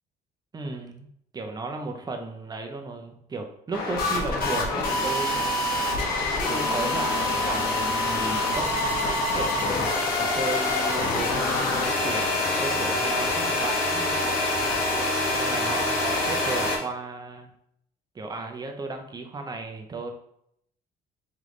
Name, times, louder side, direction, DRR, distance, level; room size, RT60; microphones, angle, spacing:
voice 1, 0.5-1.1 1.3-6.0 6.5-8.7 9.4-11.3 12.0-14.2 15.3-17.5 18.1-20.1, right 3 dB, 25° right, 4 dB, 0.7 m, -35 dB
sound 1, 3.7-16.8, left 2 dB, 60° left, 1.3 m, -25 dB
3.3 x 3.2 x 3.8 m, 0.74 s
cardioid pair, 110°, 17 cm